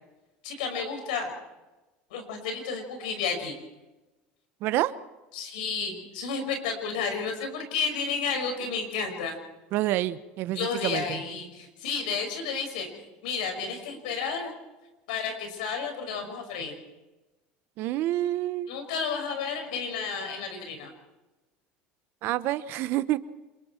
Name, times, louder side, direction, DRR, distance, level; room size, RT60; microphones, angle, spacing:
voice 1, 0.4-1.3 2.1-3.6 5.3-9.4 10.5-14.5 15.1-16.8 18.7-20.9, left 5 dB, 85° left, 5 dB, 5.7 m, -32 dB
voice 2, 4.6-4.9 9.7-11.0 17.8-18.7 22.2-23.2, right 15 dB, 60° right, 14 dB, 1.0 m, -27 dB
27.5 x 22.5 x 4.5 m, 1.1 s
supercardioid pair, 110°, 4 cm